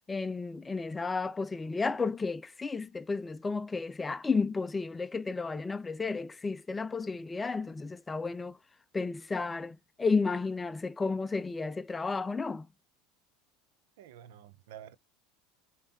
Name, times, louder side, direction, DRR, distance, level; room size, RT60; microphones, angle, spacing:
voice 1, 0.1-8.6 8.9-12.7, left 4 dB, 15° left, 0.4 m, -32 dB
voice 2, 14.0-14.9, right 10 dB, 80° right, 0.6 m, -49 dB
5.3 x 2.7 x 2.7 m
supercardioid pair, 105°, 0 cm